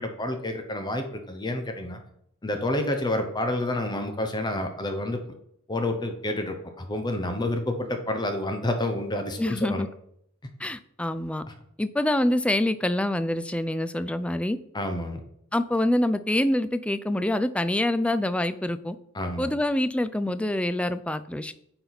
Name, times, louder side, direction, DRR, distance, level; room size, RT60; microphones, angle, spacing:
voice 1, 0.0-2.0 2.4-5.2 5.7-9.8 14.7-15.2 19.1-19.5, left 1 dB, 20° left, 6 dB, 0.8 m, -29 dB
voice 2, 9.4-9.9 10.6-11.4 11.8-14.6 15.5-19.0 19.4-21.5, left 1 dB, 5° left, 12 dB, 0.3 m, -26 dB
9.2 x 4.4 x 4.0 m, 0.71 s
head